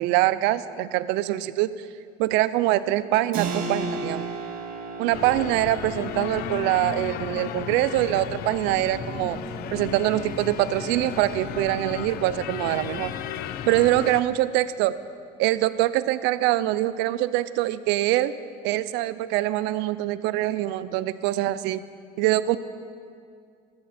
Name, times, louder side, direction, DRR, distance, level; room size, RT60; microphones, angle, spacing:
voice 1, 0.0-1.7 2.2-4.3 5.0-9.4 9.7-13.1 13.7-15.0 15.4-18.3 18.6-21.8 22.2-22.6, right 15 dB, 80° right, 15 dB, 0.6 m, -24 dB
Keyboard (musical), 3.3-13.7, right 3 dB, 55° right, 2.0 m, -37 dB
sound 1, 5.1-14.2, left 11 dB, 60° left, 0.6 m, -35 dB
sound 2, 8.6-13.9, left 1 dB, 10° left, 2.3 m, -40 dB
19.0 x 14.5 x 4.3 m, 2.2 s
cardioid pair, 150°, 18 cm